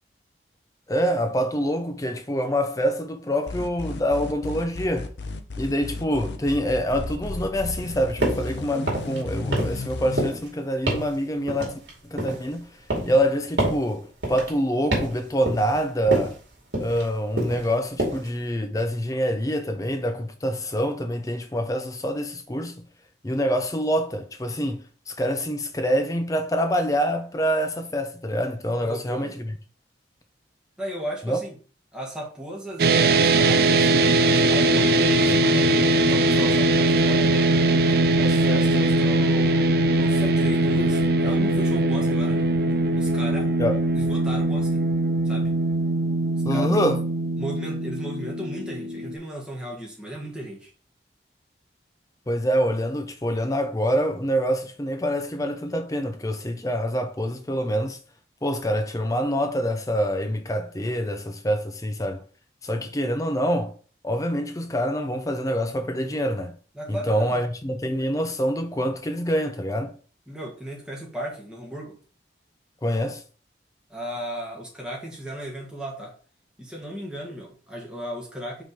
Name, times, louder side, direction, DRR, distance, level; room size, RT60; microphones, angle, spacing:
voice 1, 0.9-5.1 5.6-11.8 12.1-12.7 13.0-16.4 16.8-22.8 23.2-29.5 31.3-31.4 43.6-43.8 46.4-47.0 52.3-58.0 58.4-62.2 62.6-63.7 64.0-66.6 66.9-69.9 72.8-73.2, equal, 20° left, 0.5 m, -26 dB
sound 1, 3.5-10.3, left 2 dB, 70° left, 0.7 m, -33 dB
sound 2, 8.2-8.5 8.8-9.2 9.5-9.9 10.2-10.5 10.9-11.1 11.5-12.5 12.9-13.2 13.6-13.8 14.2-14.5 14.9-15.2 15.5-15.8 16.1-16.4 16.7-17.1 17.4-17.7 18.0-18.3, right 1 dB, 70° right, 2.5 m, -27 dB
voice 2, 28.8-29.4 30.8-31.6 31.9-33.9 34.5-37.5 38.2-42.5 42.9-43.5 43.9-44.8 45.3-45.5 46.5-46.7 47.4-50.7 66.7-67.5 70.3-72.0 73.9-76.2 76.6-78.6, equal, 5° right, 1.8 m, -35 dB
sound 3, 32.8-49.2, right 2 dB, 55° right, 0.5 m, -21 dB
5.2 x 3.7 x 4.9 m
head